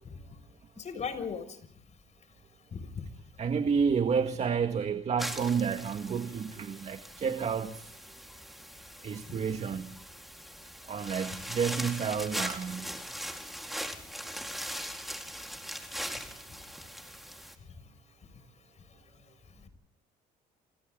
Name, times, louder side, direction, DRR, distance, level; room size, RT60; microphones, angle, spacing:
voice 1, 0.8-1.6 2.7-3.0, left 6 dB, 40° left, 6.6 m, -37 dB
voice 2, 3.4-7.9 9.0-10.0 10.9-12.9, right 6 dB, 40° right, 2.0 m, -30 dB
sound 1, 5.2-17.6, equal, ahead, 4.3 m, -40 dB
30.0 x 28.5 x 4.0 m
cardioid pair, 110°, 17 cm